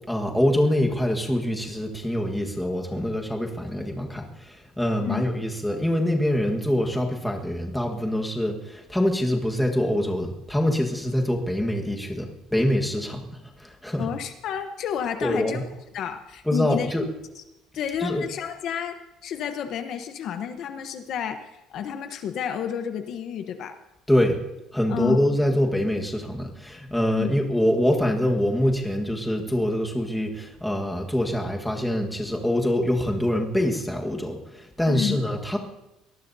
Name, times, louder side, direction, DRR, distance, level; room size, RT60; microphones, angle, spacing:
voice 1, 0.1-13.3 13.6-14.1 15.2-15.6 16.5-17.0 18.0-18.2 24.1-24.4 24.7-35.6, left 1 dB, 5° left, 1 dB, 1.5 m, -25 dB
voice 2, 14.0-15.6 15.9-16.9 17.7-19.0 19.2-23.8 24.9-25.2 27.1-27.3 34.9-35.2, left 8 dB, 45° left, 7 dB, 0.9 m, -30 dB
24.0 x 18.5 x 2.7 m, 0.95 s
cardioid pair, 170°, 0 cm